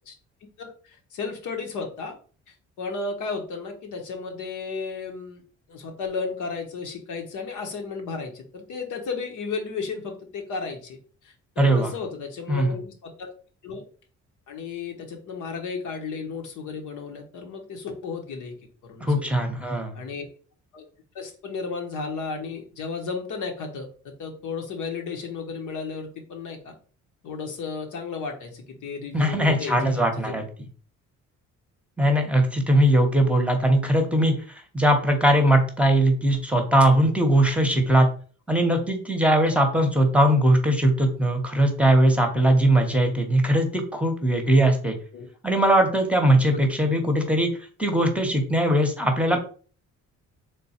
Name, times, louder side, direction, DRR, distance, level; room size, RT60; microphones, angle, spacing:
voice 1, 0.6-2.2 2.5-5.4 5.7-11.0 11.2-13.3 13.6-13.8 14.5-18.5 18.8-19.4 19.9-20.3 20.7-20.8 21.1-26.8 27.2-30.4 45.1-45.3 46.5-46.6, left 4 dB, 80° left, 3 dB, 1.0 m, -34 dB
voice 2, 11.6-11.9 12.5-12.7 19.0-20.0 29.1-30.4 32.0-34.3 34.7-38.1 38.5-45.0 45.4-47.5 47.8-49.4, right 1 dB, 5° right, 3 dB, 0.8 m, -20 dB
3.4 x 2.2 x 4.2 m, 0.41 s
cardioid pair, 90°, 30 cm